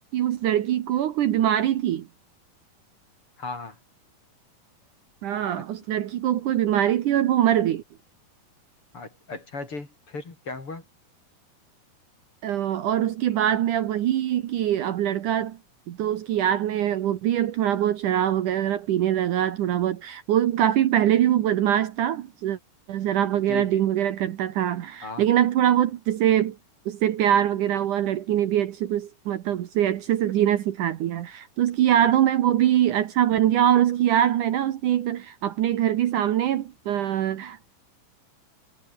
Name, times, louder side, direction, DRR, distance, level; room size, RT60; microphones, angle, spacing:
voice 1, 0.1-2.1 5.2-7.8 12.4-15.6 15.9-22.6 22.9-26.6 26.9-37.7, right 11 dB, 65° right, 2.5 m, -23 dB
voice 2, 3.4-3.8 8.9-10.8 23.5-23.8 25.0-25.3, left 3 dB, 35° left, 5.6 m, -36 dB
omnidirectional pair, 4.2 m